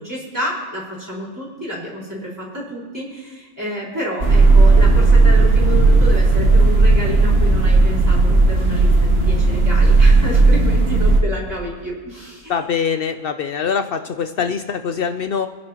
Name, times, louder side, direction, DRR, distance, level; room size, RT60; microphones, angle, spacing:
voice 1, 0.0-12.5, left 1 dB, 10° right, -6 dB, 4.6 m, -29 dB
sound 1, 4.2-11.2, right 3 dB, 40° right, 1.5 m, -13 dB
voice 2, 12.5-15.5, left 6 dB, 85° left, 8 dB, 0.5 m, -23 dB
25.0 x 10.5 x 3.0 m, 1.5 s
omnidirectional pair, 1.7 m